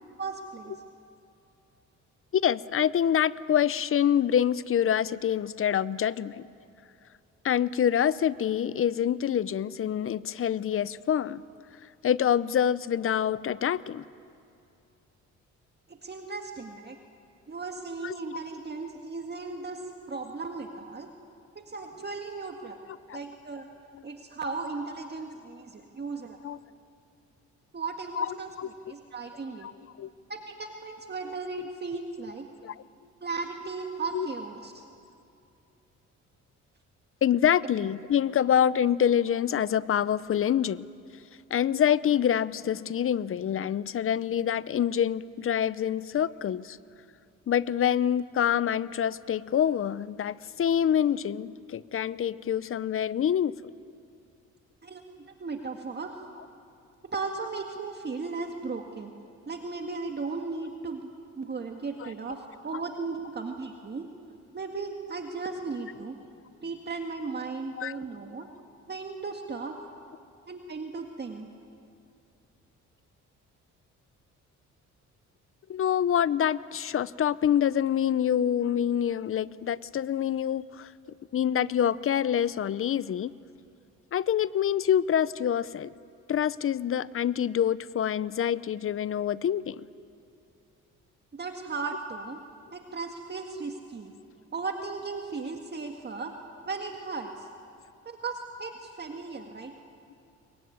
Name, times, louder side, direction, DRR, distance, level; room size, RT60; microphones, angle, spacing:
voice 1, 0.2-0.7 15.9-17.0 17.5-19.8 20.1-21.1 21.6-22.8 23.1-23.7 24.0-26.4 27.7-28.5 28.9-29.7 30.3-32.5 33.2-34.8 54.8-56.2 57.1-59.1 59.5-61.0 61.4-64.1 64.5-66.2 66.6-68.5 68.9-69.8 70.5-71.5 91.3-92.4 92.7-94.1 94.5-96.3 96.7-97.5 98.1-99.7, right 4 dB, 35° right, 3 dB, 1.9 m, -36 dB
voice 2, 2.3-6.5 7.4-11.4 12.0-14.0 18.0-18.1 23.1-23.2 26.4-26.6 28.2-28.3 28.6-28.7 29.6-29.7 30.0-30.1 31.6-31.7 32.6-32.8 34.1-34.3 37.2-40.9 41.5-46.8 47.5-53.7 62.0-62.1 67.8-68.0 75.7-80.9 81.3-83.3 84.1-85.9 86.3-89.8, left 9 dB, 45° left, 18 dB, 0.7 m, -26 dB
23.5 x 21.0 x 9.5 m, 2.6 s
cardioid pair, 90°, 30 cm